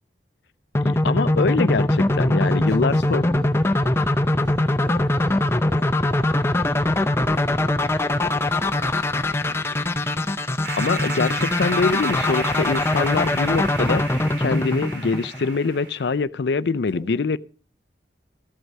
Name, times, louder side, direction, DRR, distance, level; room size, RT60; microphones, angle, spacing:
voice 1, 0.8-3.3 10.8-14.1 14.4-17.4, left 4 dB, 65° left, 0.5 m, -24 dB
sound 1, 0.8-15.7, left 1 dB, 15° left, 0.6 m, -22 dB
voice 2, 2.4-9.9 16.9-17.2, equal, 40° right, 2.9 m, -45 dB
sound 2, 10.6-16.2, right 3 dB, 75° right, 3.9 m, -34 dB
14.0 x 8.0 x 5.3 m
head